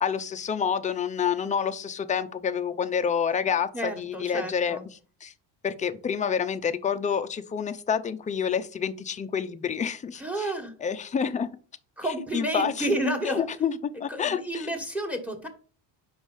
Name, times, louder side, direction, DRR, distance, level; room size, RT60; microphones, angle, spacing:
voice 1, 0.0-4.8 5.2-5.3 5.6-10.5 10.8-11.5 12.3-14.7, left 7 dB, 20° left, 8 dB, 0.5 m, -28 dB
voice 2, 3.7-4.9 10.2-10.7 12.0-13.4 14.1-15.5, right 1 dB, 5° right, 6 dB, 1.3 m, -31 dB
5.4 x 4.8 x 5.4 m, 0.39 s
cardioid pair, 135°, 39 cm